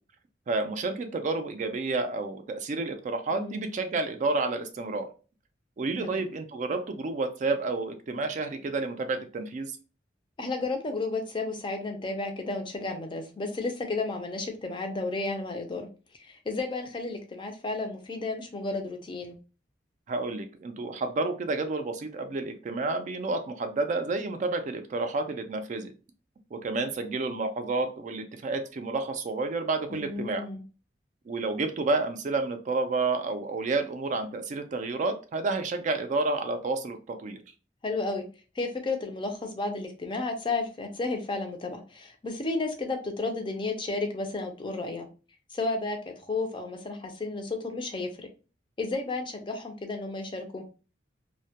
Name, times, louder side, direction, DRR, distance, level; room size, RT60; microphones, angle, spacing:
voice 1, 0.5-5.1 5.8-9.7 20.1-25.9 26.5-30.4 31.3-37.4, right 3 dB, 45° right, 7 dB, 0.3 m, -30 dB
voice 2, 3.3-3.6 6.0-6.3 10.4-15.9 16.2-19.4 29.9-30.6 37.8-38.2 38.6-45.1 45.5-48.3 48.8-50.6, left 3 dB, 30° left, 4 dB, 0.4 m, -32 dB
2.1 x 2.1 x 2.7 m, 0.34 s
head